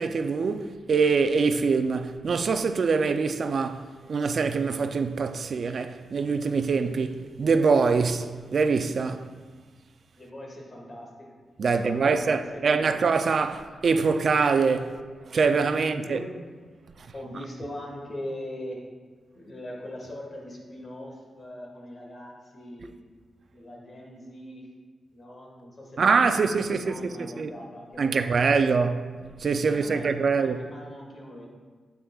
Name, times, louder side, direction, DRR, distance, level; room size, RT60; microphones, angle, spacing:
voice 1, 0.0-9.3 11.6-15.0 15.3-16.2 26.0-27.1 27.4-27.5 28.0-29.1 29.4-30.6, right 5 dB, 50° right, 0.4 m, -24 dB
voice 2, 10.2-11.4 11.6-12.8 15.8-16.3 17.1-18.8 19.3-22.9 23.5-24.7 25.1-26.3 26.8-28.7 29.6-31.5, left 1 dB, 35° left, 1.6 m, -41 dB
9.4 x 8.0 x 2.3 m
wide cardioid pair, 150°, 0 cm